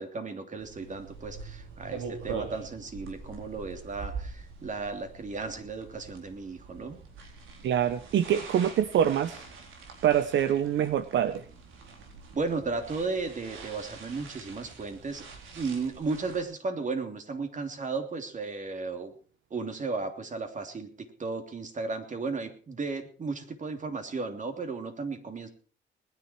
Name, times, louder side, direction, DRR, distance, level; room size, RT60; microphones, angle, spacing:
voice 1, 0.0-7.0 12.3-15.2 15.5-19.1 19.5-25.5, right 4 dB, 40° right, 6 dB, 3.1 m, -34 dB
sound 1, 0.6-16.4, right 4 dB, 85° right, 4.0 m, -44 dB
voice 2, 7.6-9.4 10.0-11.4, right 9 dB, 70° right, 13 dB, 0.9 m, -25 dB
20.5 x 10.5 x 4.6 m, 0.40 s
cardioid pair, 90°, 20 cm